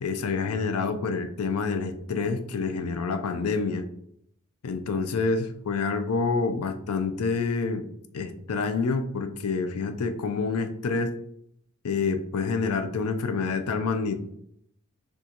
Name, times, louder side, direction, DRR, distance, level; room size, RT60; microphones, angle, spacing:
voice 1, 0.0-3.9 4.6-7.8 8.1-11.1 11.8-14.2, left 4 dB, 85° left, 9 dB, 0.5 m, -27 dB
6.2 x 2.4 x 2.9 m, 0.72 s
head